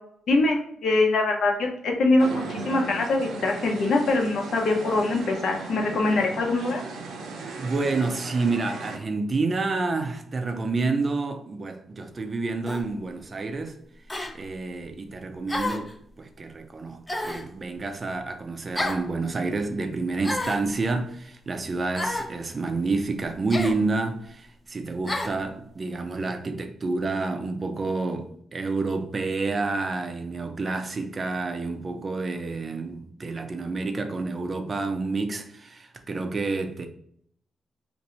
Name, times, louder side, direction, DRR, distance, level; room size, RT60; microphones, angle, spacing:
voice 1, 0.3-6.8, left 2 dB, 70° left, 0.8 m, -23 dB
sound 1, 2.2-9.0, right 3 dB, 85° right, 0.6 m, -37 dB
voice 2, 7.5-13.8 14.3-15.9 16.2-36.9, right 3 dB, 35° right, 0.5 m, -29 dB
sound 2, 12.7-12.9 14.1-14.3 15.5-15.9 17.1-17.5 18.8-19.1 20.2-20.7 22.0-22.3 23.5-23.8 25.1-25.4, left 1 dB, 15° left, 0.5 m, -30 dB
2.7 x 2.6 x 4.2 m
cardioid pair, 80°, 0 cm